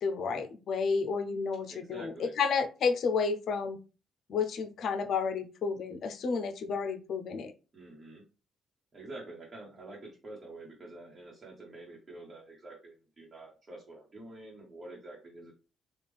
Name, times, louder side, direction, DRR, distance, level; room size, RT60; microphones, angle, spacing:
voice 1, 0.0-3.8 4.3-7.5, left 5 dB, 65° left, 8 dB, 0.6 m, -31 dB
voice 2, 1.7-2.4 7.7-8.2 8.9-15.5, right 2 dB, 35° right, -4 dB, 1.1 m, -47 dB
3.5 x 2.4 x 3.4 m, 0.32 s
cardioid pair, 90°, 0 cm